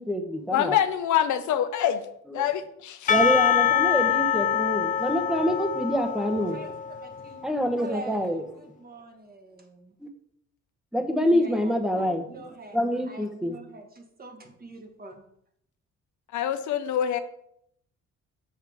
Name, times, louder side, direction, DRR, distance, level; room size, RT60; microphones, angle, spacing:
voice 1, 0.0-0.7 2.4-2.5 3.1-6.6 7.4-8.4 10.9-12.3 12.7-13.6, equal, ahead, 5 dB, 1.0 m, -26 dB
voice 2, 0.5-2.0 2.3-3.1 16.3-17.2, left 10 dB, 75° left, 10 dB, 0.7 m, -25 dB
Percussion / Church bell, 3.1-7.5, left 8 dB, 25° left, 0.4 m, -25 dB
voice 3, 6.5-7.4 7.8-9.9 11.2-12.8 13.0-15.2, right 2 dB, 30° right, 4 dB, 1.4 m, -44 dB
6.6 x 5.7 x 3.5 m, 0.71 s
cardioid pair, 90°, 30 cm